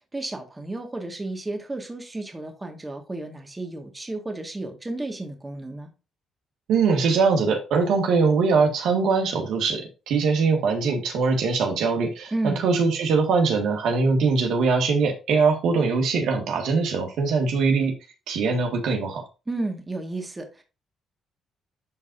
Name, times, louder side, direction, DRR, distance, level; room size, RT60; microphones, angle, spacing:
voice 1, 0.1-5.9 12.3-12.7 19.5-20.6, right 2 dB, 20° right, 1.7 m, -32 dB
voice 2, 6.7-17.9 18.3-19.2, right 4 dB, 80° right, 1.7 m, -22 dB
12.0 x 4.0 x 2.6 m
cardioid pair, 90°, 0 cm